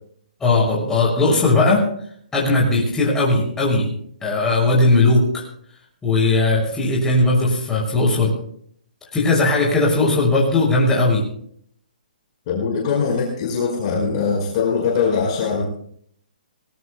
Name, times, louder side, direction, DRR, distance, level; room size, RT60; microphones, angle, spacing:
voice 1, 0.4-1.8 2.3-3.9 4.2-5.4 6.0-8.3 9.1-11.2, left 2 dB, 10° left, -4 dB, 6.9 m, -18 dB
voice 2, 12.5-15.6, left 5 dB, 35° left, -2 dB, 4.8 m, -21 dB
23.5 x 19.5 x 2.3 m, 0.63 s
hypercardioid pair, 150°, 5 cm